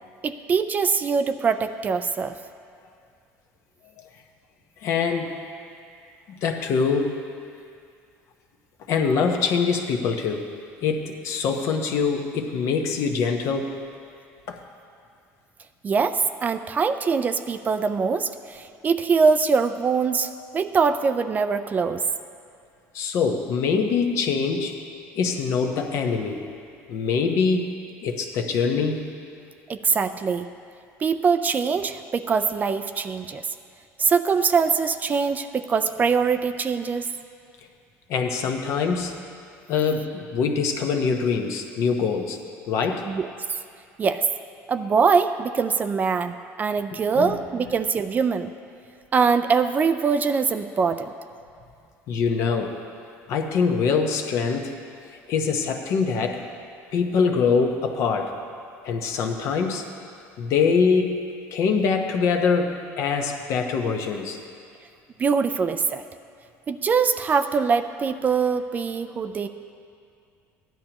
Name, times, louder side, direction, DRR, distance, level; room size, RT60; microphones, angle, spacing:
voice 1, 0.2-2.3 15.8-22.0 29.7-30.5 31.0-33.4 34.0-37.1 43.1-43.3 44.0-44.3 44.7-48.5 49.1-51.1 65.2-66.0 66.7-69.5, right 5 dB, 30° right, 10 dB, 0.4 m, -23 dB
voice 2, 4.8-5.4 6.4-7.2 8.9-10.5 10.8-13.7 14.5-14.6 22.9-24.7 25.1-26.4 26.9-27.6 28.0-29.0 38.1-39.1 39.7-42.4 42.7-43.1 47.1-47.3 52.1-52.8 53.3-54.7 55.3-56.4 56.9-58.3 58.8-59.8 60.4-61.2 61.5-64.4, left 5 dB, 60° left, 4 dB, 1.0 m, -24 dB
15.0 x 10.5 x 3.0 m, 2.4 s
cardioid pair, 120°, 6 cm